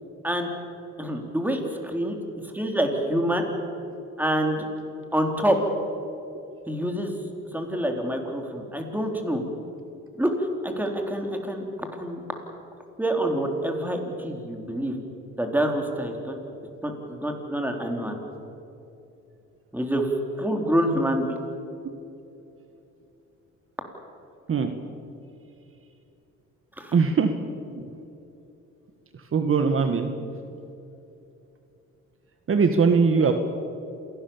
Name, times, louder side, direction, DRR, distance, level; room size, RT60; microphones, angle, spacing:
voice 1, 1.0-2.2 2.5-3.4 4.2-4.7 5.1-5.6 6.7-7.1 7.5-9.4 10.2-12.2 13.0-14.9 15.4-16.3 16.8-18.2 19.7-21.4 26.8-26.9, right 1 dB, 5° right, 3 dB, 3.9 m, -26 dB
voice 2, 26.9-27.3 29.3-30.1 32.5-33.3, right 5 dB, 45° right, 7 dB, 1.6 m, -21 dB
27.5 x 17.5 x 7.3 m, 2.9 s
cardioid pair, 90°, 30 cm